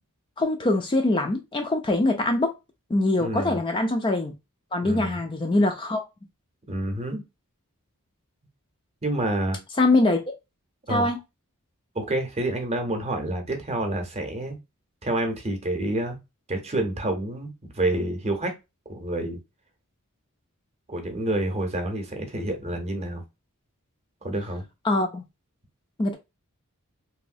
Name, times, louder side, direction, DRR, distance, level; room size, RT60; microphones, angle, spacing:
voice 1, 0.4-2.5 2.9-4.3 4.7-6.0 9.8-10.2 10.9-11.2 24.8-25.2 26.0-26.2, left 2 dB, 20° left, 0.3 m, -23 dB
voice 2, 3.2-3.6 4.8-5.2 6.7-7.2 9.0-9.6 10.9-11.1 11.9-14.6 15.0-16.2 16.5-18.5 18.9-19.4 20.9-23.2 24.2-24.6, right 1 dB, 30° right, 0.7 m, -28 dB
3.0 x 2.6 x 2.6 m
head